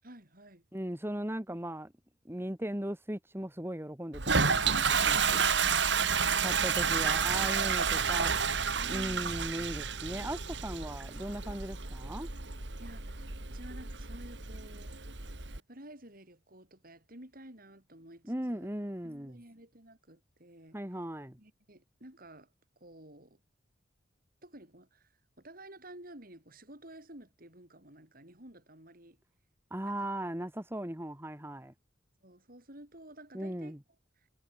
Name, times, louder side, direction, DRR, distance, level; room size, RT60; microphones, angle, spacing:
voice 1, 0.0-0.7 8.8-9.3 12.8-15.0 15.5-18.7 19.0-20.8 21.4-22.5 22.8-23.4 24.4-25.1 25.4-29.2 29.8-30.1 32.2-33.8, right 1 dB, 50° right, 7.8 m, -52 dB
voice 2, 0.7-1.9 2.3-5.4 6.4-8.4 8.9-12.3 18.3-19.4 20.7-21.4 29.7-31.7 33.3-33.8, right 1 dB, 15° right, 1.9 m, -38 dB
Toilet flush, 4.1-15.6, right 6 dB, 70° right, 2.6 m, -30 dB
head